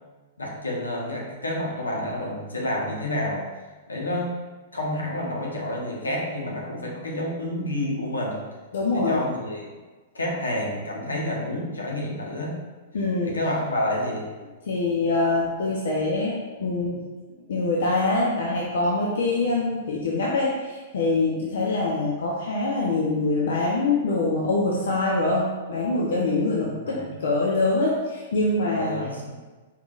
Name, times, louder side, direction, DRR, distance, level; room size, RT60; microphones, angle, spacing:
voice 1, 0.4-3.5 3.9-4.4 4.7-8.4 8.9-9.7 10.1-12.6 13.2-14.3 26.7-27.1 28.7-29.3, left 1 dB, 85° left, -3 dB, 1.0 m, -29 dB
voice 2, 8.7-9.2 12.9-13.3 14.7-17.0 17.5-28.9, left 2 dB, 65° left, -4 dB, 0.7 m, -24 dB
4.6 x 3.6 x 2.4 m, 1.3 s
figure-of-eight pair, 110°, 0 cm